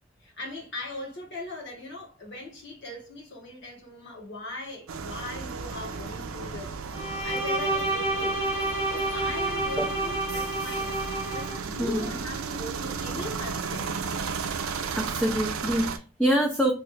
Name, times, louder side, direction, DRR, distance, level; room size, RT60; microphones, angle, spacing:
voice 1, 0.2-6.7 7.0-8.4 8.9-14.0, left 2 dB, 55° left, 1.2 m, -39 dB
sound 1, 4.9-16.0, right 5 dB, 80° right, 0.4 m, -34 dB
Bowed string instrument, 6.9-11.6, right 2 dB, 75° left, 1.3 m, -29 dB
voice 2, 11.8-12.1 14.8-16.7, equal, 5° left, 0.3 m, -26 dB
3.1 x 2.3 x 3.1 m
head